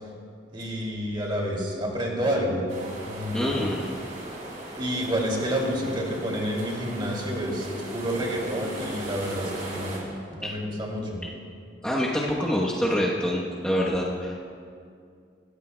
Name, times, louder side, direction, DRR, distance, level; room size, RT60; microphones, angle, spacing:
voice 1, 0.5-2.6 3.0-3.7 4.7-11.2, equal, 30° right, -2 dB, 2.5 m, -29 dB
sound 1, 2.7-10.0, right 1 dB, 45° right, 3.6 m, -38 dB
voice 2, 3.3-3.9 10.4-10.5 11.8-14.3, equal, 5° left, -6 dB, 1.0 m, -26 dB
21.5 x 15.5 x 2.3 m, 2.3 s
head